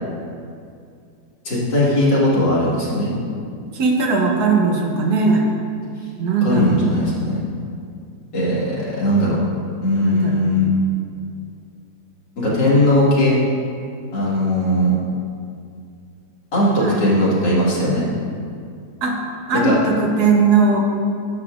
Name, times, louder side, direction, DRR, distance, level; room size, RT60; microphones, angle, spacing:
voice 1, 1.5-3.1 6.4-7.4 8.3-9.4 9.8-10.7 12.4-13.3 14.1-14.9 16.5-18.1 19.6-19.8, left 1 dB, 80° left, -7 dB, 2.4 m, -18 dB
voice 2, 3.7-5.5 6.2-6.8 10.0-10.5 16.8-17.1 19.0-19.2 19.5-20.8, right 4 dB, 70° right, 1 dB, 1.3 m, -18 dB
9.5 x 6.9 x 2.4 m, 2.3 s
omnidirectional pair, 1.8 m